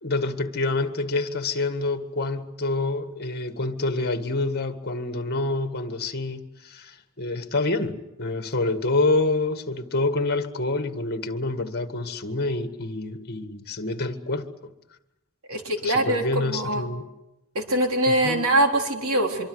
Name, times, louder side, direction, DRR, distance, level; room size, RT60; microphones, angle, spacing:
voice 1, 0.0-14.5 15.8-17.0 18.1-18.4, left 2 dB, 50° left, 1.8 m, -27 dB
voice 2, 15.5-16.9 17.5-19.5, right 1 dB, 70° right, 4.0 m, -23 dB
25.0 x 24.5 x 8.0 m
head